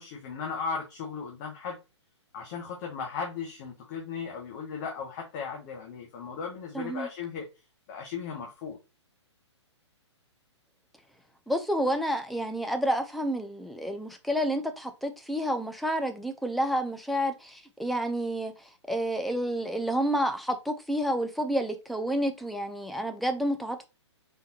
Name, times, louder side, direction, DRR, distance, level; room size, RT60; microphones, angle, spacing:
voice 1, 0.0-1.8 2.3-7.5 7.9-8.8, left 6 dB, 35° left, 1.1 m, -36 dB
voice 2, 6.7-7.1 11.5-18.5 18.9-23.9, equal, ahead, 0.5 m, -29 dB
4.5 x 3.4 x 2.9 m
figure-of-eight pair, 130°, 15 cm